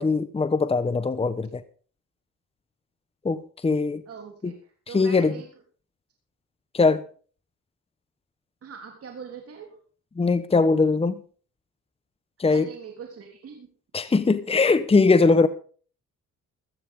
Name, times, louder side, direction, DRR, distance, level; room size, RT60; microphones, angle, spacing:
voice 1, 0.0-1.6 3.2-4.0 4.9-5.4 6.7-7.0 10.2-11.2 12.4-12.7 13.9-15.5, left 4 dB, 20° left, 1.0 m, -21 dB
voice 2, 4.0-5.5 8.6-9.8 12.5-13.7, right 6 dB, 50° right, 3.4 m, -42 dB
15.5 x 13.5 x 3.7 m
cardioid pair, 90°, 30 cm